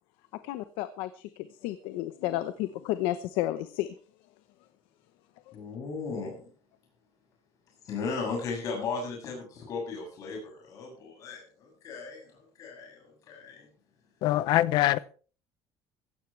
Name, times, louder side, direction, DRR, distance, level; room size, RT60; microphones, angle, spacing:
voice 1, 0.4-3.9 5.5-5.6, left 14 dB, 85° left, 1.0 m, -32 dB
voice 2, 5.5-6.3 7.8-12.3 12.6-13.7, left 4 dB, 40° left, 7.3 m, -36 dB
voice 3, 14.2-15.0, left 15 dB, 55° left, 0.7 m, -23 dB
16.0 x 16.0 x 3.4 m
cardioid pair, 180°, 9 cm